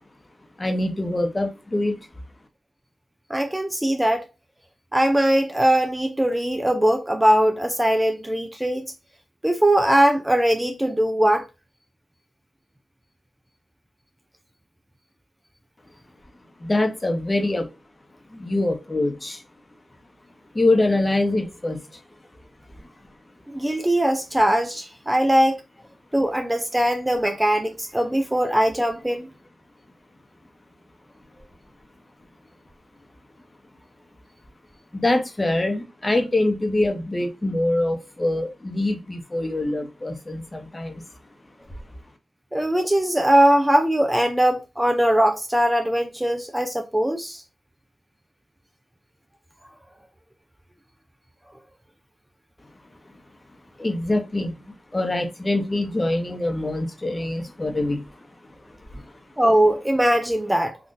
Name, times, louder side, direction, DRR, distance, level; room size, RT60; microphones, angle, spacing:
voice 1, 0.6-2.0 16.6-17.7 18.3-19.4 20.5-21.8 34.9-41.0 53.8-54.6 54.9-58.1 58.9-59.0, left 2 dB, 30° left, 0.8 m, -24 dB
voice 2, 3.3-4.3 4.9-8.8 9.4-11.5 23.5-25.6 26.1-29.3 42.5-47.4 59.4-60.8, right 1 dB, 10° right, 0.4 m, -20 dB
3.6 x 2.4 x 2.5 m
cardioid pair, 50°, 0 cm